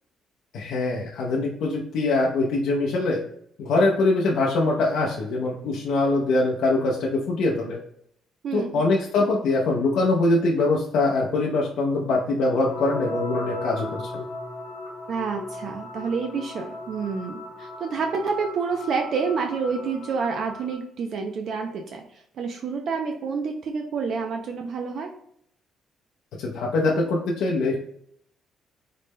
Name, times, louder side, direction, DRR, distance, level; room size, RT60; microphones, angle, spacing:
voice 1, 0.5-3.2 3.6-7.8 8.5-14.3 26.4-27.7, left 2 dB, 70° left, -2 dB, 0.5 m, -23 dB
voice 2, 8.4-8.8 15.1-25.1, right 5 dB, 45° right, 3 dB, 0.3 m, -28 dB
sound 1, 12.6-20.7, left 2 dB, 45° left, 1.1 m, -37 dB
4.0 x 2.1 x 3.4 m, 0.71 s
cardioid pair, 180°, 0 cm